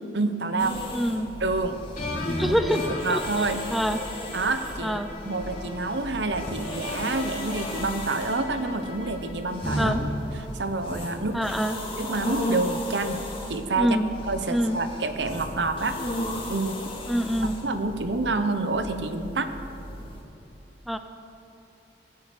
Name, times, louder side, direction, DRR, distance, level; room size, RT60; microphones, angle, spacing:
voice 1, 0.1-0.8 1.4-1.8 2.5-2.6 3.0-3.6 4.3-5.0 5.3-9.9 10.5-11.4 12.0-13.2 13.5-14.0 14.3-16.0 16.5-16.8 17.6-19.5, right 3 dB, 80° right, 9 dB, 1.1 m, -28 dB
sound 1, 0.6-20.2, left 1 dB, 30° left, 2.6 m, -35 dB
voice 2, 0.9-1.3 2.4-2.8 3.1-3.5 3.7-4.0 4.8-5.1 9.8-10.0 11.3-11.8 13.8-14.1 14.5-14.8 17.1-17.6 20.9-21.0, equal, ahead, 8 dB, 0.6 m, -25 dB
sound 2, 1.9-10.1, left 3 dB, 50° left, 3.4 m, -39 dB
17.0 x 9.7 x 7.8 m, 2.9 s
head